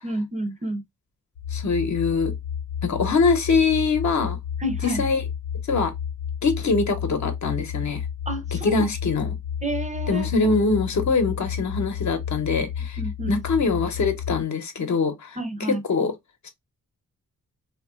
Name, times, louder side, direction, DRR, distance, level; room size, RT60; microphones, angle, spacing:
voice 1, 0.0-0.8 4.6-5.0 8.3-8.7 9.6-10.5 13.0-13.4 15.4-15.8, right 1 dB, 20° right, 0.5 m, -29 dB
sound 1, 1.4-14.4, left 8 dB, 90° left, 0.6 m, -31 dB
voice 2, 1.5-2.3 2.8-4.4 4.8-5.2 5.7-5.9 6.4-8.0 8.5-9.3 10.1-13.0 13.3-16.1 16.4-16.5, left 4 dB, 55° left, 0.8 m, -23 dB
3.1 x 2.4 x 2.3 m
cardioid pair, 90°, 34 cm